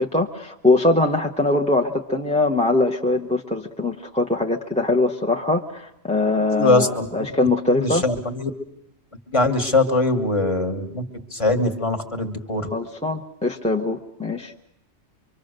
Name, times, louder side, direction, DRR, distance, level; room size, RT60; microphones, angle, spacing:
voice 1, 0.0-8.0 12.7-14.5, left 2 dB, 5° left, 1 dB, 0.7 m, -22 dB
voice 2, 6.5-7.1 7.4-8.5 9.3-11.1 11.3-12.7, left 2 dB, 25° left, 5 dB, 1.5 m, -22 dB
24.5 x 24.5 x 6.6 m, 0.81 s
omnidirectional pair, 1.4 m